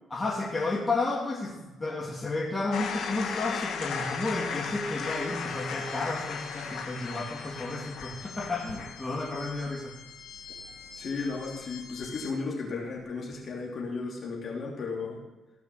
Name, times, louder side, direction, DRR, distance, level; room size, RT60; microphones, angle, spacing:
voice 1, 0.1-9.9, left 2 dB, 25° left, -2 dB, 2.7 m, -32 dB
sound 1, 2.7-12.3, left 6 dB, 75° left, 1.6 m, -37 dB
voice 2, 10.9-15.2, left 4 dB, 50° left, -1 dB, 3.2 m, -34 dB
17.0 x 5.7 x 6.6 m, 1.1 s
cardioid pair, 90°, 0 cm